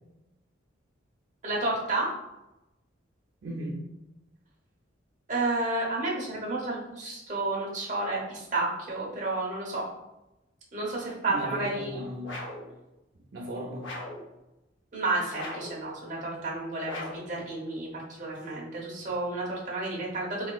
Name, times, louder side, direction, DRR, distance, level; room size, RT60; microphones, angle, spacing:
voice 1, 1.4-2.1 5.3-9.8 10.7-12.0 14.9-20.5, right 2 dB, 40° right, -3 dB, 0.9 m, -31 dB
voice 2, 3.4-3.9 11.3-12.4 13.3-14.0, right 1 dB, 65° right, -4 dB, 0.5 m, -36 dB
sound 1, 12.2-12.7 13.8-14.3 15.3-15.8 16.8-17.3, left 1 dB, 75° left, 0.7 m, -39 dB
3.8 x 2.9 x 2.3 m, 0.95 s
head